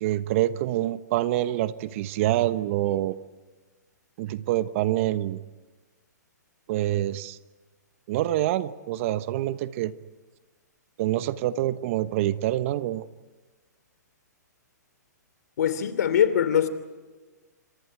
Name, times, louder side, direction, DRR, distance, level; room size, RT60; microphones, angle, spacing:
voice 1, 0.0-3.2 4.2-5.4 6.7-7.4 8.1-9.9 11.0-13.0, right 14 dB, 45° right, 1.1 m, -26 dB
voice 2, 15.6-16.7, left 9 dB, 65° left, 3.0 m, -22 dB
29.5 x 26.5 x 4.8 m
hypercardioid pair, 130°, 10 cm